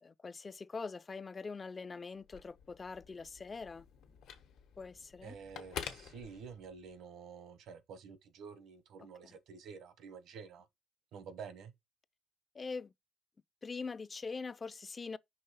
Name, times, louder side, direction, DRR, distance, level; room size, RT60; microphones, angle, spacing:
voice 1, 0.0-3.9 4.8-5.4 9.2-9.4 12.5-12.9 13.6-15.2, left 4 dB, 30° left, 0.3 m, -43 dB
Telephone, 2.2-6.9, left 8 dB, 85° left, 1.3 m, -49 dB
voice 2, 5.2-10.7 11.1-11.7, right 6 dB, 80° right, 1.0 m, -49 dB
5.5 x 3.2 x 5.5 m
cardioid pair, 90°, 0 cm